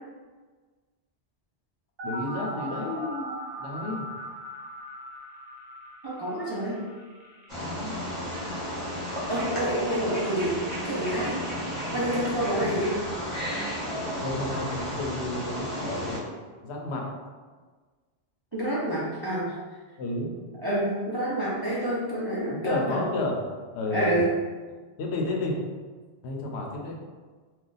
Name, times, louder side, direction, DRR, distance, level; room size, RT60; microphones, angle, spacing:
voice 1, 2.0-4.1 7.6-8.0 12.2-12.7 14.2-16.2 16.6-17.1 20.0-20.3 22.5-23.4 23.7-24.2 25.0-25.6 26.2-27.0, left 2 dB, 75° left, 0 dB, 0.9 m, -32 dB
sound 1, 2.0-12.0, right 1 dB, 60° right, 1.0 m, -41 dB
voice 2, 6.0-6.8 9.3-11.4 11.9-13.0 18.5-19.5 20.6-23.0 23.9-24.3, right 1 dB, 35° right, -8 dB, 0.4 m, -28 dB
Wild animals, 7.5-16.2, equal, 30° left, 0.9 m, -33 dB
2.5 x 2.3 x 3.8 m, 1.4 s
omnidirectional pair, 1.1 m